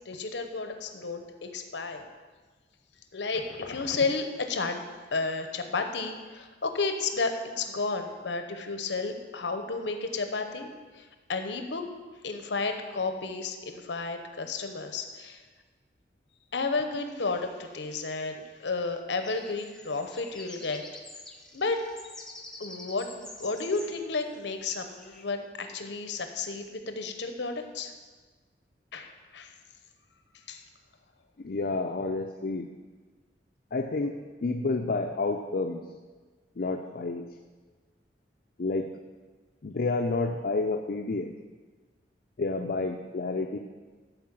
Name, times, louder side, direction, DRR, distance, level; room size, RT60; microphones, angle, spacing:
voice 1, 0.0-2.1 3.1-4.8 5.1-10.7 10.9-11.8 12.2-15.4 16.5-20.8 21.5-21.8 22.6-27.9 28.9-29.5 30.5-30.6, left 3 dB, 70° left, 6 dB, 0.8 m, -32 dB
sound 1, 19.2-25.3, left 2 dB, 5° left, 1.0 m, -47 dB
voice 2, 31.4-32.7 33.7-35.8 36.6-37.3 38.6-39.0 39.6-41.3 42.4-43.6, left 3 dB, 55° left, 5 dB, 0.5 m, -30 dB
11.5 x 4.6 x 7.4 m, 1.4 s
head